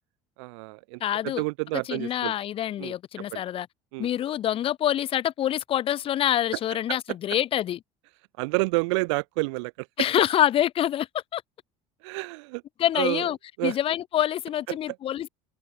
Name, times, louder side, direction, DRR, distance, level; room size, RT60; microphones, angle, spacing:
voice 1, 0.4-2.3 2.8-2.9 3.3-3.4 3.9-4.1 8.4-9.9 12.0-12.6 12.9-13.3 13.6-13.8 14.7-15.0, right 28 dB, 85° right, 1.4 m, -29 dB
voice 2, 1.0-1.4 1.9-3.7 4.0-7.8 10.0-11.4 12.8-15.3, left 11 dB, 40° left, 1.1 m, -26 dB
open air
cardioid pair, 130°, 14 cm